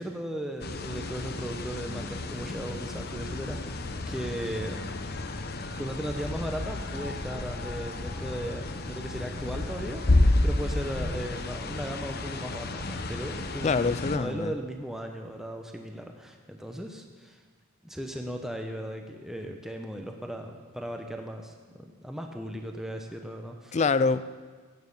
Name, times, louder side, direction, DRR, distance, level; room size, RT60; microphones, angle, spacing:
voice 1, 0.0-5.0 5.8-17.4 17.8-23.8, equal, ahead, 3 dB, 0.8 m, -37 dB
sound 1, 0.6-14.2, left 2 dB, 45° left, 0.9 m, -31 dB
voice 2, 13.6-14.5 23.7-24.2, left 4 dB, 30° left, 15 dB, 0.4 m, -25 dB
16.0 x 9.5 x 5.5 m, 1.4 s
head